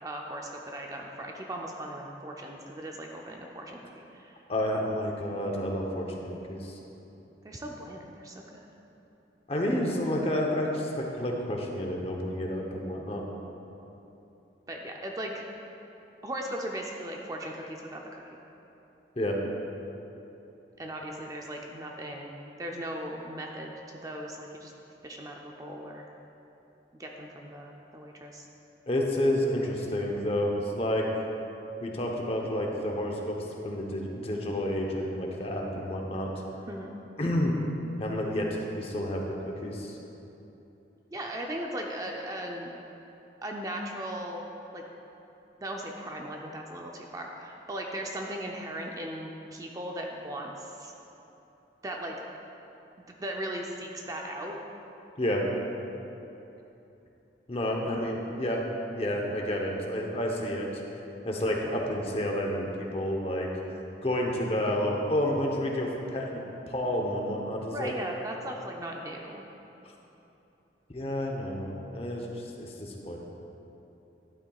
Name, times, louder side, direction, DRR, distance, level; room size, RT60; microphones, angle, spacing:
voice 1, 0.0-4.3 7.4-8.6 14.7-15.4 16.2-18.2 20.8-24.7 25.0-26.1 27.0-28.5 36.7-36.9 41.1-42.7 43.4-44.5 44.7-44.8 45.6-50.9 51.8-52.2 53.2-54.6 67.7-69.5, right 1 dB, 20° right, 0 dB, 0.4 m, -38 dB
voice 2, 4.5-6.8 9.5-13.2 19.2-19.4 28.9-31.1 31.8-33.4 33.6-36.3 37.2-37.5 38.0-40.0 55.2-55.5 57.5-58.6 58.9-60.7 61.2-63.5 64.0-67.9 70.9-72.3 72.6-73.2, left 1 dB, 35° left, 0 dB, 0.8 m, -30 dB
11.0 x 8.7 x 2.4 m, 3.0 s
head